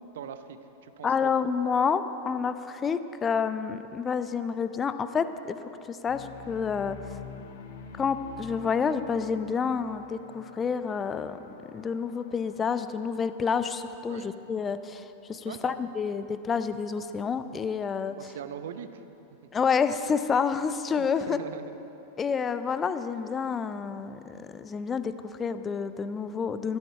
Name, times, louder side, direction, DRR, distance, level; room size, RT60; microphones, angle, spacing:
voice 1, 0.1-1.3 14.1-14.3 15.4-15.8 18.2-19.0 20.9-21.8, right 8 dB, 60° right, 10 dB, 0.7 m, -41 dB
voice 2, 1.0-5.6 5.8-7.2 8.0-18.3 19.5-21.4 22.2-26.8, left 6 dB, 20° left, 12 dB, 0.5 m, -29 dB
sound 1, 6.1-14.3, left 7 dB, 55° left, 0.8 m, -48 dB
12.5 x 12.0 x 5.6 m, 3.0 s
figure-of-eight pair, 90°, 0 cm